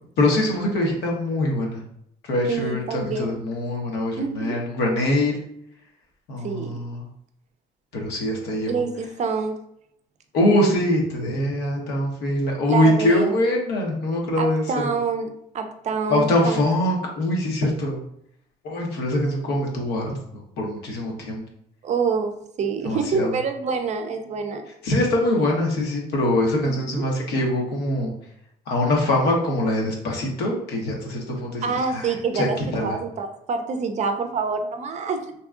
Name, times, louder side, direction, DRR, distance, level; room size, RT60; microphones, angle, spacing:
voice 1, 0.2-1.8 2.2-5.3 6.3-7.0 7.9-8.8 10.3-14.9 16.1-18.0 18.6-21.4 22.8-23.3 24.8-28.1 28.7-32.5 32.7-33.0, left 1 dB, 80° left, -1 dB, 1.0 m, -23 dB
voice 2, 2.5-3.4 4.2-4.6 6.4-6.7 8.7-9.6 12.7-13.3 14.4-16.6 21.8-24.6 26.6-27.0 31.6-35.2, right 5 dB, 45° right, 7 dB, 0.4 m, -26 dB
3.5 x 2.9 x 2.4 m, 0.73 s
cardioid pair, 110°, 17 cm